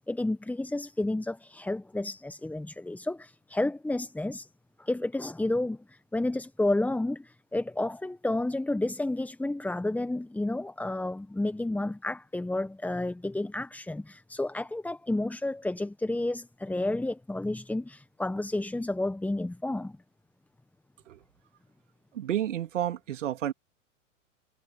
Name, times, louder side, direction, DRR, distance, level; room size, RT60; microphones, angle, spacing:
voice 1, 0.0-4.5 4.8-20.0, left 2 dB, 5° left, 1.3 m, -31 dB
voice 2, 22.1-23.5, right 11 dB, 65° right, 3.1 m, -30 dB
figure-of-eight pair, 90°, 39 cm